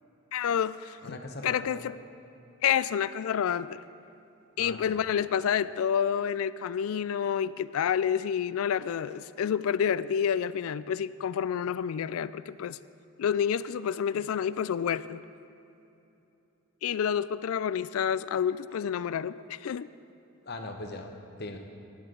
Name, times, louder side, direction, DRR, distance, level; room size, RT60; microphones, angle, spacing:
voice 1, 0.3-1.2 1.4-1.9 2.6-3.8 4.6-12.8 13.2-15.2 16.8-19.9, left 8 dB, 80° left, 16 dB, 0.3 m, -29 dB
voice 2, 1.0-1.8 4.6-5.0 20.4-21.1 21.4-21.6, left 2 dB, 50° left, 4 dB, 0.9 m, -39 dB
15.5 x 9.9 x 3.8 m, 2.9 s
head